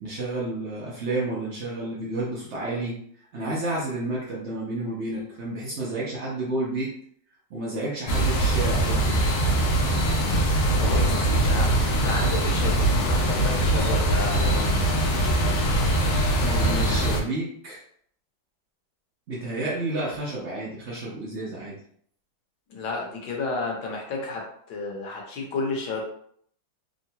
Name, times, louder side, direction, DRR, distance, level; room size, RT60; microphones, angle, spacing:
voice 1, 0.0-3.0 3.3-6.9 7.5-9.1 16.4-17.8 19.3-21.8, right 2 dB, 80° right, -5 dB, 0.6 m, -30 dB
sound 1, 8.1-17.2, right 1 dB, 85° left, 1.5 m, -22 dB
voice 2, 10.7-14.8 22.7-24.4 24.7-26.0, left 3 dB, 70° left, -1 dB, 1.3 m, -31 dB
3.7 x 2.2 x 2.7 m, 0.63 s
omnidirectional pair, 2.1 m